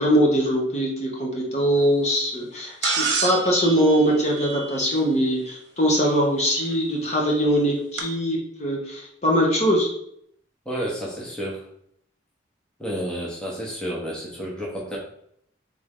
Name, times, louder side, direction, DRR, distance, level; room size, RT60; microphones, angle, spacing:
voice 1, 0.0-9.9, equal, 35° left, -2 dB, 0.9 m, -22 dB
sound 1, 2.8-5.1 6.7-6.8 8.0-8.1, right 5 dB, 75° right, 0.8 m, -28 dB
voice 2, 10.7-11.6 12.8-15.0, equal, 5° left, -4 dB, 0.9 m, -30 dB
3.8 x 3.4 x 3.5 m, 0.70 s
head